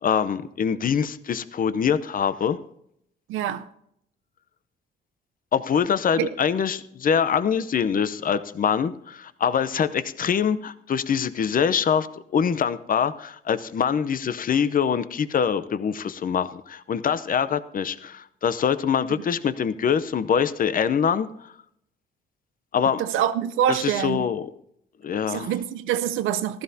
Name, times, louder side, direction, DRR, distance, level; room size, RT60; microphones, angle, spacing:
voice 1, 0.0-2.6 5.5-12.1 12.3-21.5 22.7-23.0 23.7-24.5 25.0-25.5, left 7 dB, 45° left, 0.7 m, -24 dB
voice 2, 3.3-3.7 6.2-6.3 19.1-19.2 23.0-24.3 25.3-26.6, right 10 dB, 85° right, 0.7 m, -25 dB
15.0 x 13.0 x 2.8 m
cardioid pair, 90°, 20 cm